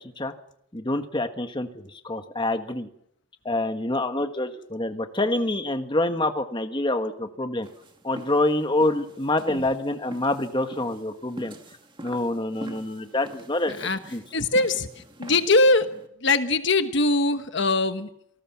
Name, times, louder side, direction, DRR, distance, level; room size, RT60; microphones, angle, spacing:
voice 1, 0.7-2.9 3.4-7.7 8.0-11.5 12.0-14.2, left 2 dB, 20° left, 7 dB, 1.6 m, -26 dB
sound 1, 7.6-16.1, right 1 dB, 25° right, 2.2 m, -45 dB
voice 2, 13.7-14.0 14.3-14.9 15.2-15.9 16.2-18.1, left 2 dB, 55° left, 9 dB, 1.3 m, -21 dB
28.0 x 19.0 x 6.1 m, 0.70 s
head